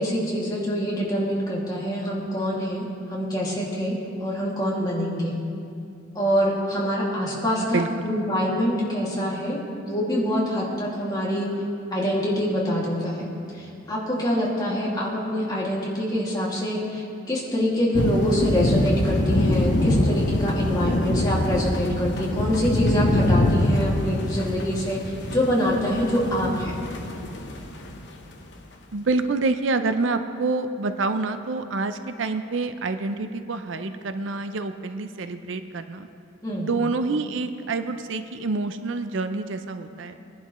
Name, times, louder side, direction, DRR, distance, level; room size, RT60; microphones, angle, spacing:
voice 1, 0.0-5.3 6.1-9.6 9.9-11.5 11.9-25.0 25.3-26.8 36.4-36.7, equal, 20° left, -5 dB, 2.3 m, -25 dB
voice 2, 7.6-8.1 28.9-36.1 36.6-40.2, right 3 dB, 70° right, 9 dB, 0.5 m, -27 dB
sound 1, 17.9-28.0, left 1 dB, 60° left, 1.0 m, -24 dB
21.5 x 11.0 x 3.1 m, 2.5 s
head